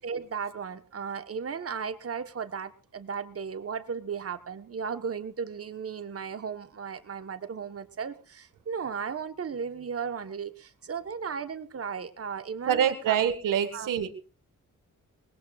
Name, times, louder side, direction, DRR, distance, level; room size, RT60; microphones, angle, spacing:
voice 1, 0.0-13.2 13.7-13.9, right 6 dB, 45° right, 10 dB, 1.3 m, -35 dB
voice 2, 12.7-14.1, right 9 dB, 85° right, 8 dB, 1.7 m, -25 dB
21.0 x 20.0 x 2.5 m, 0.37 s
cardioid pair, 65°, 32 cm